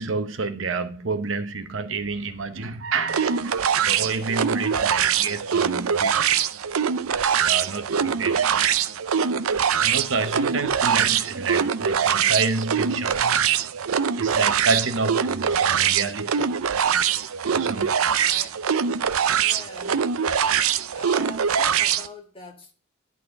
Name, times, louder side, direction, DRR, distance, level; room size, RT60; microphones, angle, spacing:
voice 1, 0.0-6.4 7.4-8.6 9.2-13.7 14.2-16.4 16.7-16.9 17.5-17.9, right 4 dB, 65° right, 1.0 m, -29 dB
sound 1, 3.1-22.1, right 7 dB, 85° right, 0.6 m, -23 dB
voice 2, 19.3-20.0 20.9-22.7, equal, 25° left, 2.0 m, -42 dB
11.5 x 4.1 x 6.3 m
head